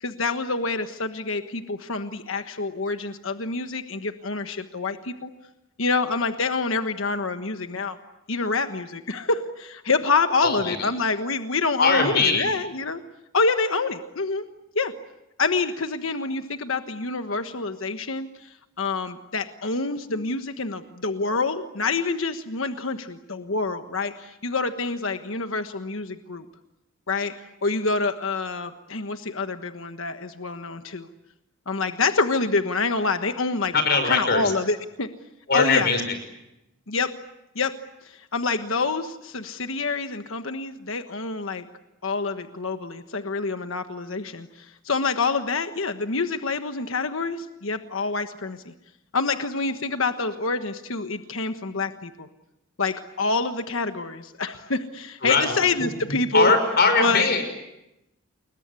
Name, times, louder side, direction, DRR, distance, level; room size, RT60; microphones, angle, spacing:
voice 1, 0.0-5.3 5.8-8.0 8.3-13.0 13.3-14.4 14.7-14.9 15.4-26.4 27.1-27.3 27.6-31.1 31.7-33.7 34.0-35.1 35.5-35.9 36.9-37.1 37.5-37.7 38.0-41.7 42.0-48.7 49.1-52.3 52.8-56.5 57.0-57.3, left 3 dB, 70° left, 8 dB, 1.3 m, -27 dB
voice 2, 10.4-10.9 11.8-12.5 33.7-34.5 35.5-36.0 55.2-57.4, left 4 dB, 50° left, 8 dB, 5.8 m, -22 dB
29.5 x 22.0 x 8.3 m, 0.90 s
head